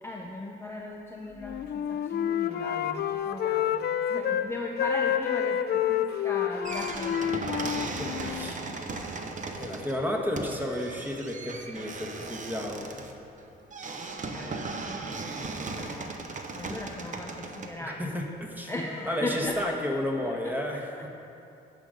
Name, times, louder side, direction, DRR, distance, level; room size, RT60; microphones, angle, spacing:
voice 1, 0.0-7.7 14.3-14.7 15.4-16.3 16.6-18.1 18.7-19.8 20.2-20.5, left 2 dB, 10° left, 0 dB, 0.7 m, -38 dB
Wind instrument woodwind instrument, 1.4-4.5 4.8-8.5, left 9 dB, 55° left, 0.4 m, -29 dB
sound 1, 6.6-17.7, right 3 dB, 40° right, 0.8 m, -37 dB
voice 2, 8.0-8.7 9.6-12.9 17.8-18.7 19.1-21.1, left 1 dB, 10° right, 1 dB, 1.2 m, -32 dB
10.0 x 5.1 x 6.5 m, 2.8 s
cardioid pair, 90°, 20 cm